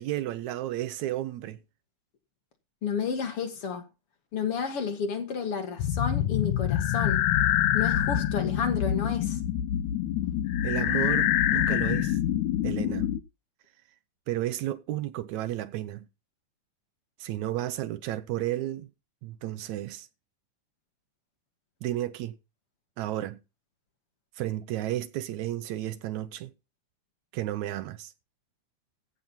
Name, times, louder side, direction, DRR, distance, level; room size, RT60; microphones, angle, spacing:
voice 1, 0.0-1.6 10.6-12.2 12.6-13.1 14.3-16.1 17.2-18.9 19.2-20.1 21.8-22.3 23.0-23.4 24.4-26.5 27.3-28.1, right 14 dB, 75° right, 2.0 m, -32 dB
voice 2, 2.8-3.8 4.3-7.2 7.7-9.4, left 6 dB, 50° left, 2.4 m, -31 dB
sound 1, 5.8-13.2, left 11 dB, 80° left, 2.2 m, -26 dB
15.5 x 6.2 x 5.7 m
omnidirectional pair, 3.5 m